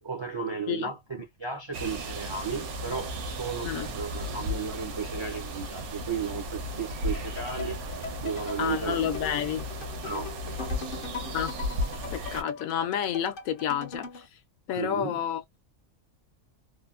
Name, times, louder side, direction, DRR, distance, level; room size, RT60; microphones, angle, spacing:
voice 1, 0.0-7.8 8.2-9.3 10.0-10.9 14.8-15.2, right 5 dB, 45° right, 0.3 m, -35 dB
sound 1, 1.7-12.4, equal, 65° right, 1.0 m, -35 dB
sound 2, 7.1-14.3, left 5 dB, 55° left, 0.7 m, -41 dB
voice 2, 8.6-9.7 11.3-11.6 12.1-14.3 14.7-15.4, left 9 dB, 80° left, 1.0 m, -30 dB
3.2 x 2.2 x 2.4 m
omnidirectional pair, 1.4 m